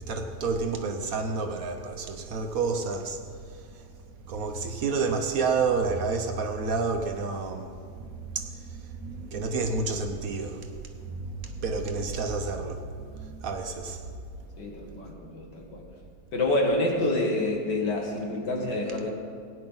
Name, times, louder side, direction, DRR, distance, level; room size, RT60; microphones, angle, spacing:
voice 1, 0.0-3.2 3.7-3.8 4.3-7.7 8.0-14.0, right 4 dB, 60° right, 1.1 m, -30 dB
voice 2, 14.6-15.8 16.3-19.1, left 2 dB, 80° left, 2.4 m, -27 dB
17.5 x 9.7 x 4.0 m
omnidirectional pair, 1.9 m